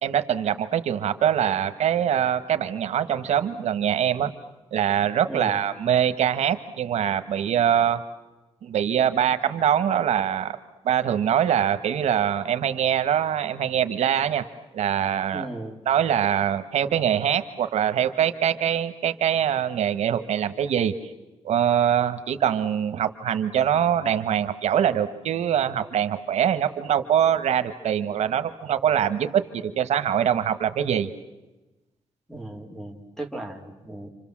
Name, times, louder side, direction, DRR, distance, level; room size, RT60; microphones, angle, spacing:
voice 1, 0.0-4.3 4.7-8.0 8.6-10.6 10.8-14.4 14.7-15.5 15.9-20.9 21.4-31.1, right 9 dB, 90° right, 10 dB, 1.3 m, -23 dB
voice 2, 5.3-5.6 15.3-15.8 32.3-34.1, right 1 dB, 5° left, 4 dB, 2.6 m, -36 dB
29.0 x 26.0 x 7.4 m, 1.1 s
wide cardioid pair, 165°, 11 cm